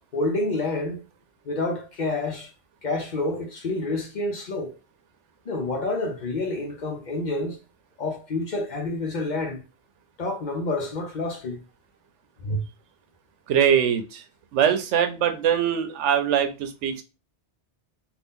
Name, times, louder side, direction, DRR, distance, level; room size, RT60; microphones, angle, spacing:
voice 1, 0.1-1.0 1.5-2.5 2.8-4.8 5.5-7.6 8.0-9.6 10.2-11.6 12.4-12.6, left 2 dB, 50° left, 0.6 m, -28 dB
voice 2, 13.5-14.2 14.5-17.0, right 8 dB, 90° right, 0.9 m, -22 dB
2.7 x 2.4 x 3.5 m
omnidirectional pair, 1.2 m